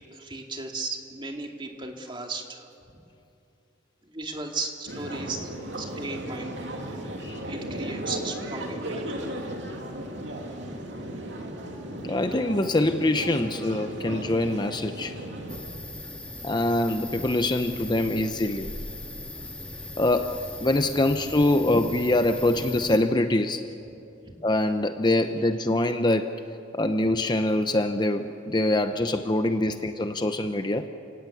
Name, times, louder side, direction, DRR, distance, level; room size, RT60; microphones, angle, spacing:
voice 1, 0.1-2.7 4.0-5.5 5.7-6.6 7.5-9.3 15.7-15.9 24.2-24.4, right 3 dB, 25° right, 2 dB, 2.3 m, -36 dB
sound 1, 4.9-15.6, right 1 dB, 65° right, 2.8 m, -35 dB
voice 2, 12.0-15.1 16.4-18.7 20.0-23.6 24.4-26.3 26.7-30.9, left 1 dB, 20° left, 8 dB, 0.7 m, -24 dB
sound 2, 15.5-23.0, left 1 dB, 5° left, 2.0 m, -39 dB
30.0 x 18.0 x 8.5 m, 2.7 s
head